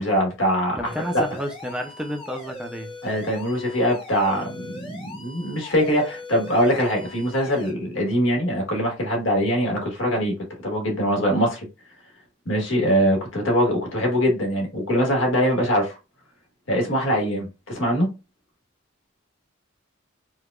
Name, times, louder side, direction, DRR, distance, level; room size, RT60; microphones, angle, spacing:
voice 1, 0.0-1.2 3.0-10.3 10.6-11.7 12.4-16.0 16.7-18.1, equal, 85° left, 1.4 m, -22 dB
sound 1, 0.8-7.7, left 2 dB, 25° left, 0.9 m, -40 dB
voice 2, 0.8-2.9, equal, 5° right, 0.4 m, -30 dB
4.6 x 2.2 x 2.3 m
head